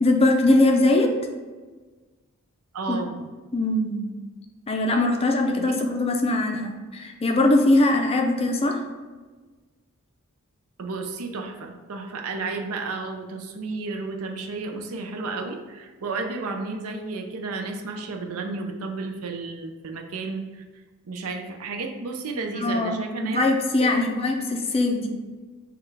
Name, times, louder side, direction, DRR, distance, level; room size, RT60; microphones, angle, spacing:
voice 1, 0.0-1.2 2.9-3.0 3.5-4.1 4.7-8.8 22.6-23.0 23.2-25.1, left 2 dB, 25° left, 3 dB, 0.5 m, -21 dB
voice 2, 2.7-3.2 5.6-5.8 10.8-20.6 21.1-23.4 23.8-24.1, right 3 dB, 70° right, 4 dB, 0.5 m, -32 dB
6.6 x 2.3 x 3.3 m, 1.3 s
head